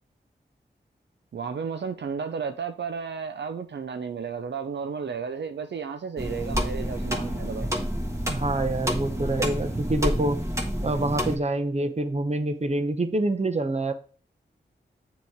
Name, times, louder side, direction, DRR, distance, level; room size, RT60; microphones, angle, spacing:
voice 1, 1.3-7.7, right 6 dB, 70° right, 0.5 m, -33 dB
sound 1, 6.2-11.4, equal, 15° right, 1.4 m, -29 dB
voice 2, 8.3-10.4 10.8-13.9, right 2 dB, 35° right, 0.8 m, -26 dB
6.9 x 3.1 x 4.8 m
cardioid pair, 40°, 19 cm